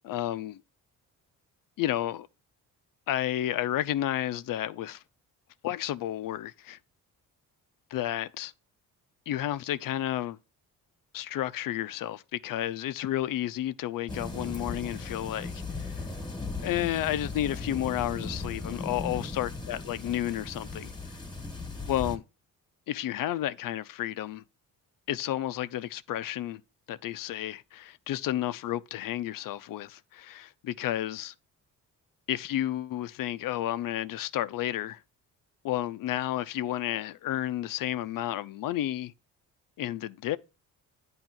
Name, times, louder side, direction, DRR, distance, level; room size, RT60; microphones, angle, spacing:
voice 1, 0.1-0.6 1.8-2.3 3.1-5.0 5.6-6.8 7.9-8.5 9.3-10.4 11.1-15.5 15.8-16.0 16.6-20.9 21.9-22.2 22.9-24.4 25.1-26.6 26.9-31.3 32.3-35.0 35.6-39.1 39.8-40.4, left 13 dB, 65° left, 0.6 m, -31 dB
sound 1, 14.1-22.2, left 3 dB, 10° left, 1.5 m, -37 dB
8.8 x 3.1 x 6.2 m
cardioid pair, 90°, 35 cm